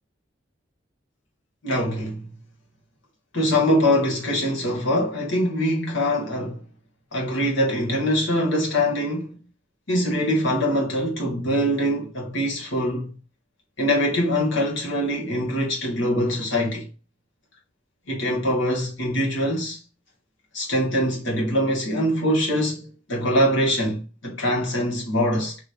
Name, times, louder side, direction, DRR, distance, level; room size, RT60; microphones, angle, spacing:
voice 1, 1.6-2.2 3.3-6.6 7.1-9.4 9.9-13.1 13.8-16.9 18.1-19.8 20.5-25.6, equal, 85° left, 1.5 m, -23 dB
3.0 x 3.0 x 2.5 m
head